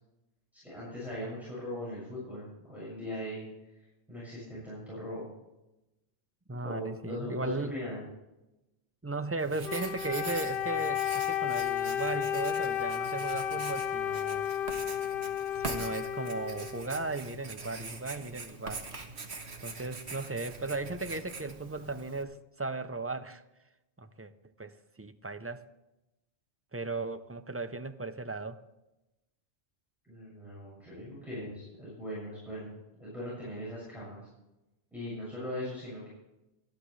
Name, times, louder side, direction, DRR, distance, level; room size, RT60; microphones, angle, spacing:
voice 1, 0.6-3.5 4.1-5.3 6.6-8.0 30.0-34.2 34.9-36.1, left 1 dB, ahead, -9 dB, 6.6 m, -39 dB
voice 2, 6.5-7.7 9.0-14.5 15.6-18.8 19.6-23.4 24.0-24.3 24.6-25.6 26.7-28.6, right 3 dB, 15° right, 10 dB, 0.5 m, -36 dB
Writing, 9.4-22.2, right 4 dB, 70° right, 1.6 m, -43 dB
Wind instrument woodwind instrument, 9.6-17.2, left 9 dB, 60° left, 0.9 m, -33 dB
26.0 x 10.5 x 3.3 m, 0.95 s
omnidirectional pair, 1.2 m